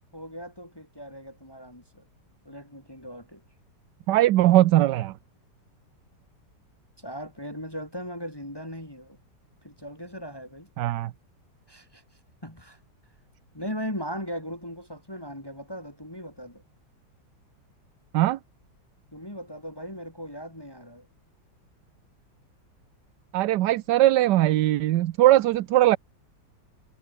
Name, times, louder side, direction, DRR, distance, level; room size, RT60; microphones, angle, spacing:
voice 1, 0.1-2.0 2.4-3.4 7.0-9.2 9.6-10.7 11.7-12.0 12.4-12.8 13.5-16.6 19.1-21.1, equal, 10° left, 3.4 m, -38 dB
voice 2, 4.1-5.1 10.8-11.1 18.1-18.4 23.3-26.0, right 15 dB, 70° right, 1.2 m, -20 dB
omnidirectional pair, 2.1 m